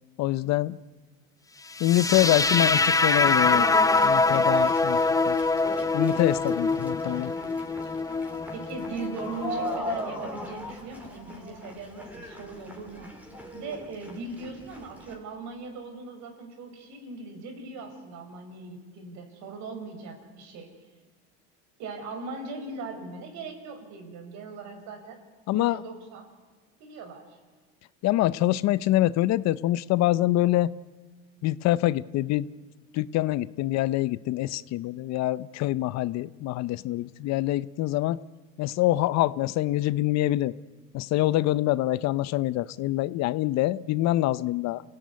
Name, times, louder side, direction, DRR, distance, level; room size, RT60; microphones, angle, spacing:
voice 1, 0.2-0.8 1.8-3.7 4.0-5.0 5.3-5.4 5.9-7.3 25.5-25.8 28.0-30.7 31.4-32.5 32.9-38.2 38.6-40.5 40.9-44.8, left 15 dB, 60° left, 18 dB, 0.8 m, -25 dB
sound 1, 1.8-9.8, left 3 dB, 10° left, 0.8 m, -24 dB
sound 2, 2.1-15.2, left 1 dB, 5° right, 4.5 m, -38 dB
voice 2, 8.5-13.1 13.5-20.7 21.8-25.2 25.5-26.3 26.8-27.4, right 3 dB, 65° right, 6 dB, 5.4 m, -39 dB
26.0 x 16.5 x 9.6 m, 1.4 s
supercardioid pair, 105°, 30 cm